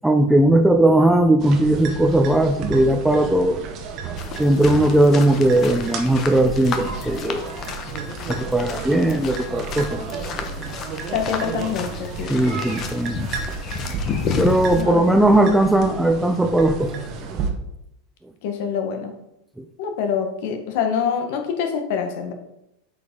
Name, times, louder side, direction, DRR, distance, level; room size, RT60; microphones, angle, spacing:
voice 1, 0.0-3.6 4.4-7.5 8.3-10.0 10.4-10.5 12.3-13.3 14.4-16.9 19.6-19.7, right 1 dB, 5° right, 7 dB, 0.5 m, -18 dB
sound 1, 1.4-17.5, right 5 dB, 40° right, 1.0 m, -32 dB
sound 2, 4.2-14.8, left 6 dB, 40° left, 0.9 m, -32 dB
voice 2, 11.1-12.3 14.8-15.6 18.4-19.1 19.8-22.3, left 7 dB, 65° left, 5 dB, 1.2 m, -26 dB
8.2 x 4.8 x 3.6 m, 0.85 s
hypercardioid pair, 120°, 0 cm